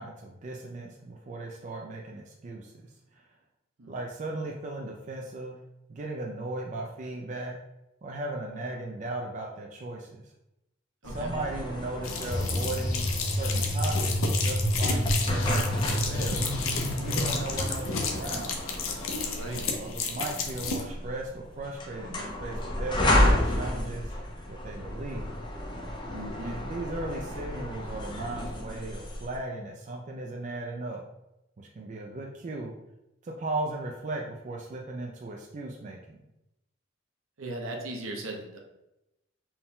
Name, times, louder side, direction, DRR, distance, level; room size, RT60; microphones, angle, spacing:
voice 1, 0.0-3.3 3.9-5.6 5.9-7.6 8.0-10.3 11.0-16.5 17.0-18.6 19.7-24.1 24.5-25.4 26.4-31.0 31.6-32.7 33.2-36.2, right 2 dB, 35° right, 0 dB, 0.4 m, -37 dB
sound 1, 11.0-29.4, left 1 dB, 25° left, 0.5 m, -32 dB
voice 2, 11.0-11.3 19.3-19.7 26.0-26.6 37.4-38.6, right 2 dB, 75° right, 1 dB, 0.8 m, -37 dB
sound 2, 12.0-20.8, left 4 dB, 80° left, 0.6 m, -32 dB
sound 3, 12.3-17.4, equal, 45° left, 1.2 m, -29 dB
4.3 x 2.2 x 3.6 m, 0.91 s
head